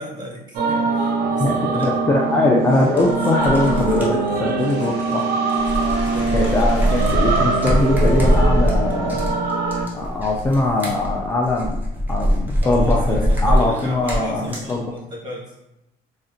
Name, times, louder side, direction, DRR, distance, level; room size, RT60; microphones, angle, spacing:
voice 1, 0.0-2.5 6.1-7.1 12.6-15.6, equal, 25° right, -3 dB, 1.1 m, -34 dB
sound 1, 0.5-9.9, right 4 dB, 65° right, 0.5 m, -23 dB
voice 2, 1.4-5.3 6.3-9.5 9.9-11.8 12.1-14.9, left 2 dB, 15° left, -2 dB, 0.3 m, -21 dB
sound 2, 1.8-1.9 2.8-5.2 5.5-14.7, equal, 10° right, 0.7 m, -22 dB
sound 3, 4.6-10.1, left 2 dB, 80° left, 0.7 m, -40 dB
3.6 x 2.1 x 2.6 m, 0.92 s
cardioid pair, 110°, 17 cm